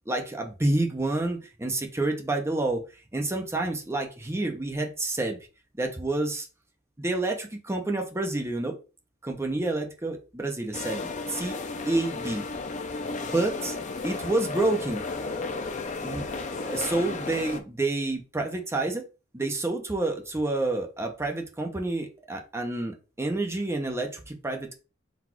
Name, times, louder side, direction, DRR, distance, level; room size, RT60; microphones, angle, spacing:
voice 1, 0.1-2.8 3.1-5.4 5.8-6.5 7.0-8.7 9.2-11.6 11.9-12.4 13.2-13.8 14.0-15.0 16.0-19.0 19.3-24.8, right 2 dB, 15° right, 3 dB, 0.6 m, -29 dB
sound 1, 10.7-17.6, left 3 dB, 40° left, 0.5 m, -34 dB
4.0 x 2.4 x 4.3 m, 0.32 s
head